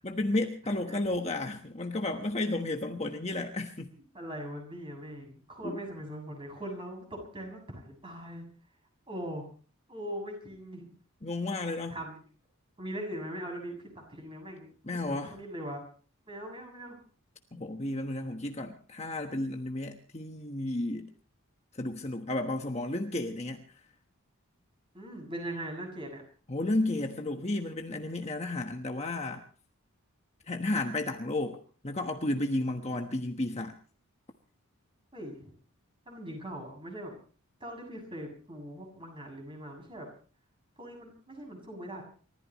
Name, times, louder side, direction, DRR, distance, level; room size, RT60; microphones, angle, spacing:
voice 1, 0.0-3.9 5.6-5.8 11.2-12.0 14.9-15.3 17.5-21.1 21.7-23.7 26.5-29.4 30.5-33.7, left 2 dB, 30° left, 4 dB, 1.3 m, -32 dB
voice 2, 4.1-8.4 9.1-9.5 9.9-10.9 11.9-12.2 12.8-15.8 16.3-17.0 24.9-26.2 35.1-35.5 36.1-37.1 37.6-40.1 40.8-42.0, equal, 25° right, 2 dB, 7.2 m, -41 dB
29.5 x 15.0 x 3.1 m, 0.41 s
head